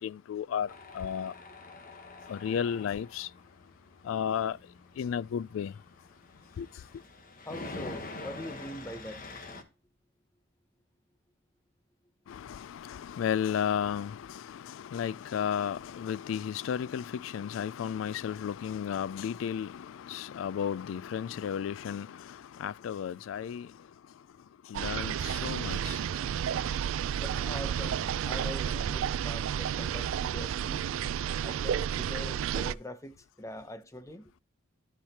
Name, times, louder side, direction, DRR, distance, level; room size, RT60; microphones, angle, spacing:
voice 1, 0.0-1.3 2.3-3.3 4.0-4.6 5.0-5.7 6.6-6.7 12.3-23.7 24.7-26.0, left 8 dB, 75° left, 0.3 m, -33 dB
Tools, 0.7-9.6, left 3 dB, 45° left, 1.2 m, -46 dB
voice 2, 7.4-9.3 27.2-30.9 31.4-34.3, left 1 dB, 15° left, 0.7 m, -43 dB
sound 1, 24.7-32.7, right 8 dB, 80° right, 0.3 m, -31 dB
13.0 x 4.8 x 2.8 m
head